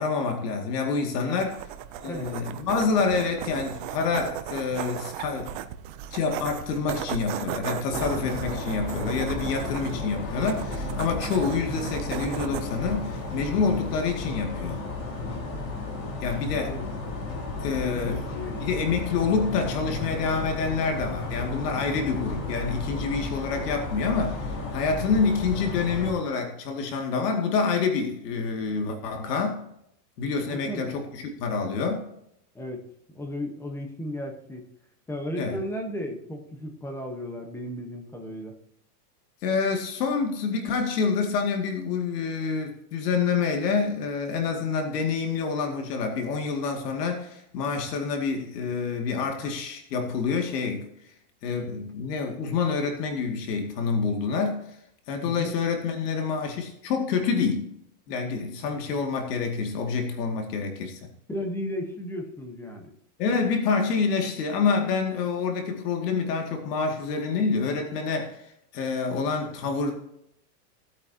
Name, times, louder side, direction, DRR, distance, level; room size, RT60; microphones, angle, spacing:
voice 1, 0.0-1.6 2.0-5.6 6.1-14.8 16.2-16.8 17.6-18.3 18.6-29.6 30.2-32.1 35.4-35.6 39.4-50.9 51.4-54.6 55.1-57.7 58.1-61.0 63.2-69.9, left 5 dB, 70° left, 3 dB, 2.4 m, -27 dB
voice 2, 1.2-1.5 2.0-2.3 16.6-16.9 17.7-18.6 30.5-30.9 32.5-34.7 35.1-38.5 55.2-55.6 61.3-62.9, equal, 5° left, 4 dB, 1.1 m, -35 dB
sound 1, 1.4-14.1, right 11 dB, 35° right, 0.5 m, -37 dB
sound 2, 7.9-26.1, left 3 dB, 45° left, 3.1 m, -33 dB
18.0 x 8.7 x 2.8 m, 0.76 s
supercardioid pair, 165°, 49 cm